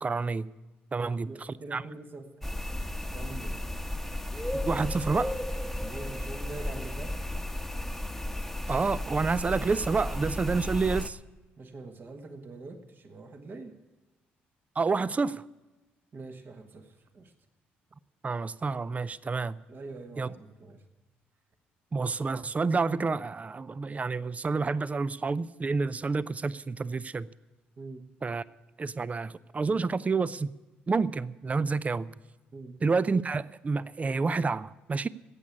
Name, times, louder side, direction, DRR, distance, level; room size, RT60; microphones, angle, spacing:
voice 1, 0.0-0.5 0.9-1.8 4.5-5.4 8.7-11.2 14.8-15.4 18.2-19.6 20.2-20.3 21.9-27.3 28.2-28.4 28.8-30.5 30.9-32.1 32.8-35.1, right 4 dB, 30° right, 0.5 m, -29 dB
voice 2, 1.0-2.5 3.1-3.7 5.8-7.2 11.6-13.8 16.1-17.3 19.7-20.9 27.8-28.1 32.5-32.8, right 3 dB, 45° right, 1.4 m, -44 dB
sound 1, 2.4-11.1, left 1 dB, 5° left, 1.0 m, -34 dB
13.5 x 8.5 x 9.8 m
hypercardioid pair, 55°, 5 cm